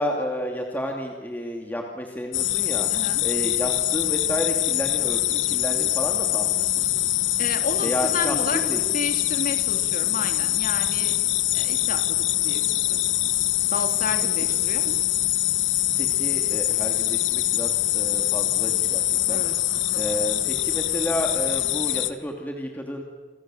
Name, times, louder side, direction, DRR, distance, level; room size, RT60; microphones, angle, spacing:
voice 1, 0.0-2.9 3.2-6.9 7.8-9.1 15.9-19.4 19.9-23.0, equal, 10° left, 1 dB, 2.5 m, -31 dB
sound 1, 2.3-22.1, left 14 dB, 85° left, 1.5 m, -24 dB
voice 2, 2.9-3.2 7.4-8.6 8.9-11.2 11.5-12.6 12.9-13.0 13.4-15.0 19.3-19.9, left 3 dB, 45° left, 5 dB, 3.4 m, -32 dB
28.0 x 27.5 x 7.7 m, 1.5 s
head